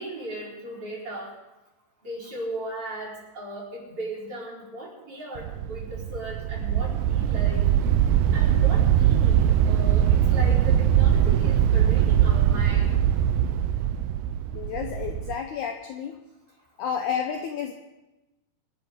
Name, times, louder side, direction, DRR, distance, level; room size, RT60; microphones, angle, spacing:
voice 1, 0.0-1.3 2.0-7.7 8.3-12.9, right 1 dB, 35° right, -5 dB, 5.3 m, -37 dB
sound 1, 5.4-15.3, right 10 dB, 90° right, 1.9 m, -21 dB
voice 2, 14.5-16.2 16.8-17.7, left 7 dB, 80° left, 5 dB, 1.8 m, -31 dB
25.5 x 11.0 x 3.8 m, 1.0 s
omnidirectional pair, 4.6 m